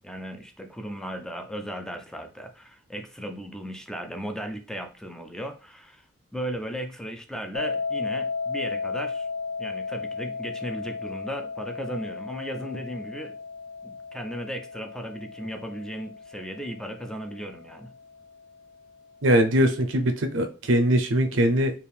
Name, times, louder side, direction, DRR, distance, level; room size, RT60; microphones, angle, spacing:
voice 1, 0.0-6.0 6.3-9.3 9.6-13.3 13.8-17.9, equal, 5° left, 5 dB, 0.4 m, -36 dB
sound 1, 7.5-18.5, left 4 dB, 80° left, 0.6 m, -35 dB
voice 2, 19.2-21.7, equal, 75° right, 8 dB, 0.6 m, -21 dB
4.5 x 2.5 x 3.4 m, 0.35 s
head